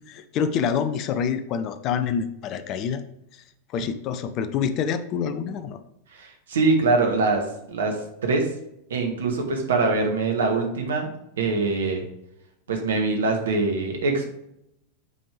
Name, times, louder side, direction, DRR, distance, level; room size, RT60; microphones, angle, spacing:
voice 1, 0.1-3.0 3.3-3.4 3.7-5.8, left 7 dB, 35° left, 11 dB, 0.6 m, -27 dB
voice 2, 6.2-7.4 7.7-7.9 8.2-8.5 8.9-11.1 11.4-12.0 12.7-14.3, right 3 dB, 65° right, 3 dB, 1.6 m, -23 dB
8.5 x 5.2 x 3.4 m, 0.79 s
figure-of-eight pair, 90°, 0 cm